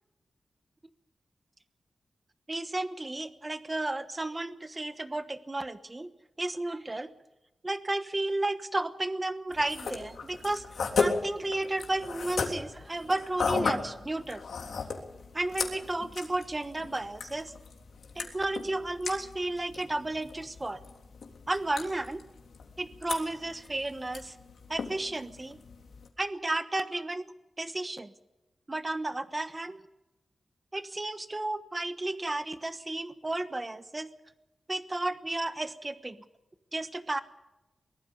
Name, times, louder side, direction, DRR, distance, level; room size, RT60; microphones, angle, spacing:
voice 1, 2.5-6.1 6.4-7.1 7.6-10.6 11.0-14.4 15.3-17.5 18.1-20.8 21.5-22.2 22.8-24.3 24.7-25.6 26.2-28.1 28.7-29.8 30.7-34.1 34.7-36.2 36.7-37.2, right 2 dB, 20° right, 11 dB, 1.2 m, -33 dB
sound 1, 9.5-26.1, left 4 dB, 85° left, 3.4 m, -36 dB
23.0 x 21.0 x 5.4 m, 0.99 s
wide cardioid pair, 165°, 0 cm